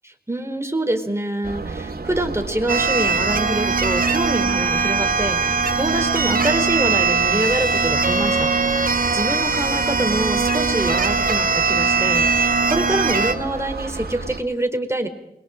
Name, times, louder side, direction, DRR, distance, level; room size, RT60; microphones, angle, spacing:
voice 1, 0.3-15.1, right 1 dB, 15° right, 5 dB, 4.2 m, -26 dB
sound 1, 1.4-14.4, right 3 dB, 80° right, 2.7 m, -32 dB
sound 2, 2.7-13.3, right 4 dB, 65° right, 1.9 m, -20 dB
28.5 x 23.0 x 5.1 m, 0.89 s
wide cardioid pair, 60°, 16 cm